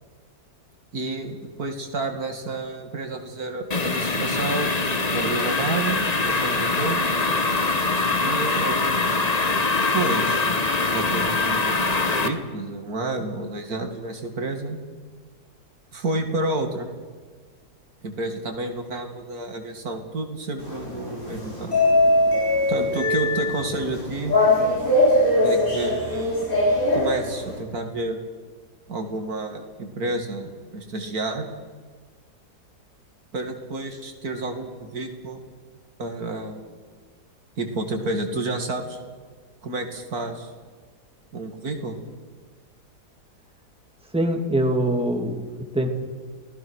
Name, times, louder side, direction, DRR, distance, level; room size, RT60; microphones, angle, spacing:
voice 1, 0.9-4.7 5.1-7.2 8.2-8.8 9.9-10.4 10.8-11.9 12.2-14.8 15.9-16.9 18.0-21.7 22.7-24.4 25.4-26.4 26.9-28.2 28.9-31.5 33.3-35.4 36.0-36.6 37.6-39.0 39.6-40.5 41.3-42.0, right 2 dB, 65° right, 5 dB, 2.6 m, -30 dB
sound 1, 3.7-12.3, left 3 dB, 25° left, 1.4 m, -23 dB
sound 2, 20.6-27.6, left 1 dB, 55° left, 6.6 m, -21 dB
voice 2, 44.1-45.4 45.7-45.9, right 1 dB, 5° right, 3 dB, 2.4 m, -23 dB
29.0 x 18.5 x 6.4 m, 1.5 s
omnidirectional pair, 1.7 m